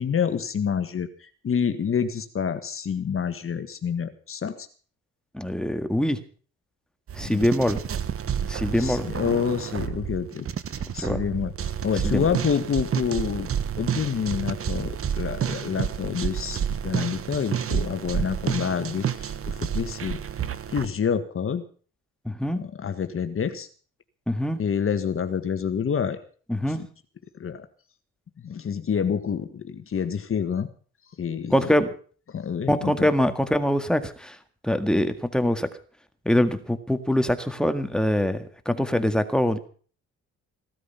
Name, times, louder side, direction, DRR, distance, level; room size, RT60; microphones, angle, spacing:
voice 1, 0.0-4.7 7.3-7.4 8.7-10.4 10.7-13.5 13.8-20.2 20.7-21.6 22.5-23.7 24.6-26.2 26.7-26.8 27.4-27.7 28.4-30.7 31.2-31.8 32.3-33.1, left 7 dB, 45° left, 9 dB, 1.6 m, -28 dB
voice 2, 5.3-6.2 7.1-7.8 8.5-9.1 11.0-11.2 12.0-12.2 22.3-22.6 24.3-24.6 26.5-26.8 31.5-31.9 32.7-34.4 34.6-35.7 36.3-39.6, left 1 dB, ahead, 8 dB, 1.9 m, -23 dB
sound 1, 7.1-20.9, right 8 dB, 50° right, 1.2 m, -30 dB
16.5 x 13.0 x 5.7 m, 0.42 s
cardioid pair, 90°, 30 cm